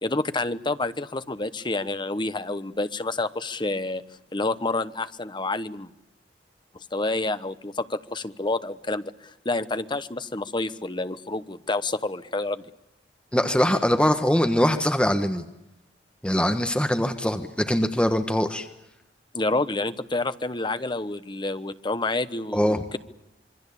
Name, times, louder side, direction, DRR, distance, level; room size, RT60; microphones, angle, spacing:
voice 1, 0.0-4.0 4.3-5.9 6.7-9.1 9.4-12.6 19.3-23.0, left 2 dB, 25° left, 12 dB, 1.1 m, -28 dB
voice 2, 13.3-15.4 16.2-18.7 22.5-22.8, equal, 5° left, 7 dB, 1.3 m, -22 dB
26.5 x 23.5 x 8.5 m, 0.87 s
head